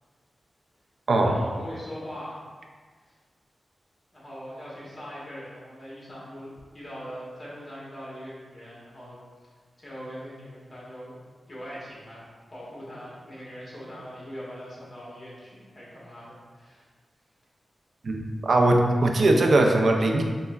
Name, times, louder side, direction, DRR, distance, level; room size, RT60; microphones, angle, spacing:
voice 1, 1.2-2.4 4.1-9.2 9.8-11.2 11.5-16.8, equal, 25° left, -7 dB, 1.1 m, -41 dB
voice 2, 18.0-20.2, right 2 dB, 60° right, 2 dB, 0.4 m, -20 dB
5.3 x 2.0 x 2.3 m, 1.5 s
wide cardioid pair, 120°, 0 cm